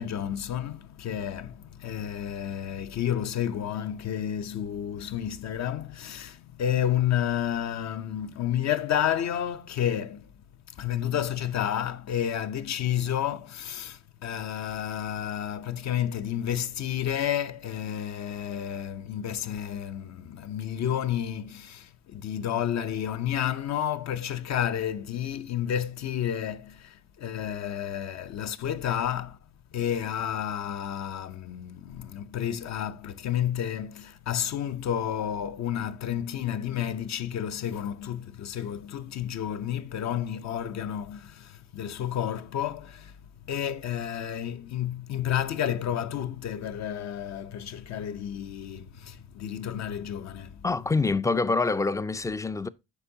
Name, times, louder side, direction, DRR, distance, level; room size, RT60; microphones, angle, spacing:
voice 1, 0.0-10.3 10.7-29.4 29.7-50.6, left 10 dB, 60° left, 0.7 m, -31 dB
voice 2, 50.6-52.7, left 3 dB, 10° left, 0.3 m, -26 dB
8.2 x 5.3 x 2.7 m
cardioid pair, 90°, 30 cm